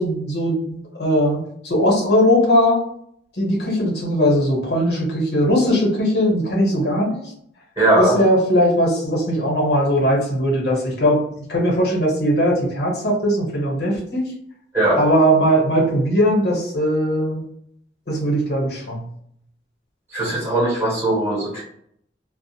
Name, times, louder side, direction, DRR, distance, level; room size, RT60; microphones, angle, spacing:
voice 1, 0.0-2.8 3.3-7.2 8.0-14.3 15.0-17.4 18.1-19.1, equal, 65° left, -2 dB, 1.0 m, -19 dB
voice 2, 7.8-8.2 14.7-15.0 20.1-21.6, right 1 dB, 15° right, -6 dB, 1.0 m, -19 dB
2.4 x 2.1 x 2.7 m, 0.69 s
head